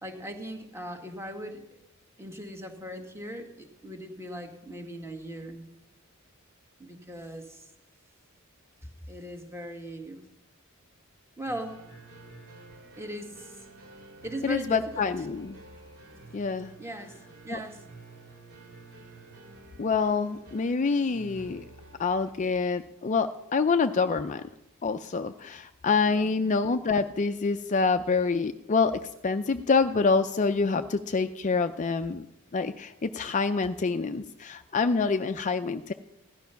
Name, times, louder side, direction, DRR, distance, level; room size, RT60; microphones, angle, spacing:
voice 1, 0.0-1.6 2.2-5.7 6.8-7.7 8.8-10.2 11.4-11.8 13.0-13.5 14.2-15.1 16.8-17.8 26.1-26.4, equal, 10° right, 4 dB, 1.7 m, -39 dB
sound 1, 11.4-22.3, right 2 dB, 70° right, 3.5 m, -50 dB
voice 2, 14.4-15.6 16.3-16.7 17.5-17.6 19.8-21.6 22.0-24.4 24.8-32.2 32.5-35.9, left 4 dB, 35° left, 9 dB, 0.4 m, -26 dB
16.5 x 11.5 x 5.7 m, 0.91 s
head